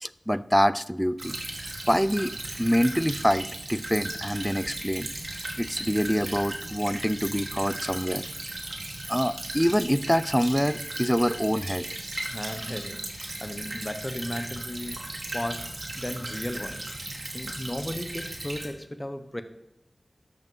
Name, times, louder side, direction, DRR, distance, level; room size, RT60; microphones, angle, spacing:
voice 1, 0.0-1.4 1.9-5.1 5.6-8.3 9.1-11.9, equal, ahead, 16 dB, 0.4 m, -25 dB
Stream / Trickle dribble, 1.2-18.7, right 1 dB, 65° right, 1.9 m, -36 dB
voice 2, 12.3-13.1 13.4-15.0 15.3-15.7 15.9-16.9 17.3-19.4, left 1 dB, 20° left, 9 dB, 0.9 m, -35 dB
12.5 x 5.5 x 5.5 m, 0.89 s
wide cardioid pair, 50°, 0 cm